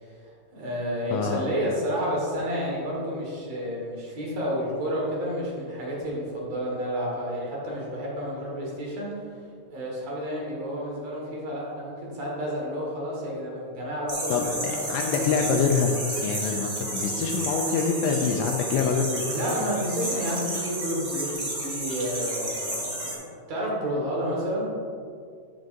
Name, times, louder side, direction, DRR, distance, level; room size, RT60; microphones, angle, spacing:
voice 1, 0.0-9.1 9.7-15.4 19.3-24.8, equal, 55° right, -4 dB, 1.9 m, -30 dB
sound 1, 14.1-23.1, right 1 dB, 80° right, 0.9 m, -32 dB
voice 2, 14.3-19.2, left 5 dB, 85° left, 2 dB, 2.5 m, -25 dB
9.4 x 9.0 x 2.6 m, 2.3 s
omnidirectional pair, 5.4 m